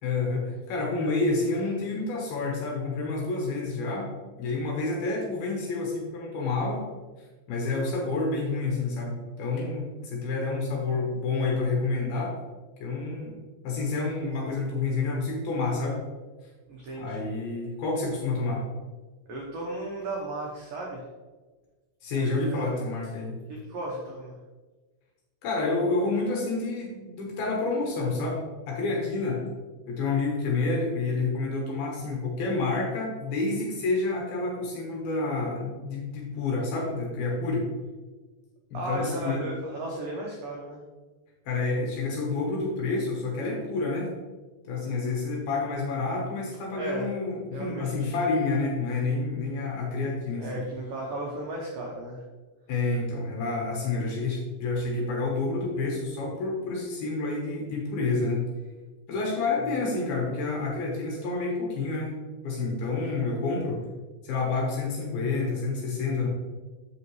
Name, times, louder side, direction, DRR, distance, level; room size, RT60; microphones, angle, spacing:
voice 1, 0.0-4.1 4.4-6.9 7.5-12.3 12.8-13.4 13.6-16.0 17.0-18.7 22.0-23.4 25.4-29.5 29.9-37.7 38.7-39.4 41.5-44.1 44.7-50.6 52.7-58.5 59.1-62.1 62.4-63.8 64.2-66.3, left 3 dB, 70° left, -2 dB, 2.6 m, -29 dB
voice 2, 16.7-17.3 19.3-21.0 22.2-22.7 23.5-24.3 38.7-40.8 46.8-47.1 47.5-48.1 50.4-52.2, right 2 dB, 85° right, -2 dB, 1.9 m, -35 dB
8.1 x 6.3 x 3.1 m, 1.3 s
omnidirectional pair, 5.3 m